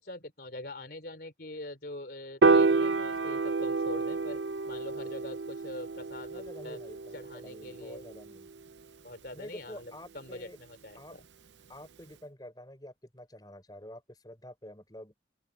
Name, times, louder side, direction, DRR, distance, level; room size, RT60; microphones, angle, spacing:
voice 1, 0.0-4.4 4.7-6.8 7.1-8.1 9.0-11.2, left 1 dB, 60° left, 3.9 m, -44 dB
Piano, 2.4-8.7, right 4 dB, 85° right, 0.7 m, -29 dB
voice 2, 6.3-8.5 9.3-10.6 11.0-11.2 11.7-15.1, left 1 dB, 20° left, 6.3 m, -48 dB
open air
head